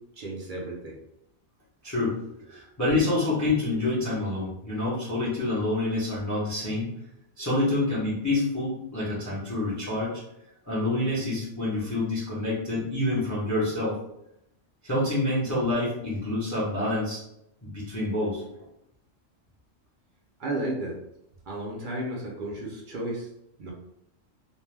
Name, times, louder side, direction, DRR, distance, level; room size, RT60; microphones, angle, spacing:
voice 1, 0.2-1.0 20.4-21.0 21.5-23.3 23.6-23.7, right 1 dB, 50° right, -2 dB, 0.6 m, -33 dB
voice 2, 1.8-2.2 2.5-6.9 7.4-10.1 10.7-13.9 14.8-17.2 17.6-18.4, left 2 dB, 20° left, -7 dB, 0.6 m, -27 dB
2.6 x 2.2 x 3.2 m, 0.81 s
omnidirectional pair, 1.3 m